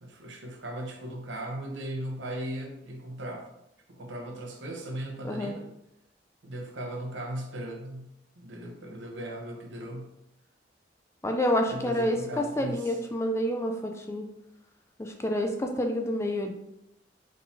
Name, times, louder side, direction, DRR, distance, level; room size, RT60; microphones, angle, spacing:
voice 1, 0.0-3.5 3.9-5.7 6.4-10.1 11.7-13.0, right 1 dB, 80° right, 2 dB, 0.8 m, -38 dB
voice 2, 11.2-14.3 15.0-16.5, left 1 dB, 15° left, 3 dB, 0.4 m, -28 dB
4.1 x 3.8 x 2.7 m, 0.83 s
head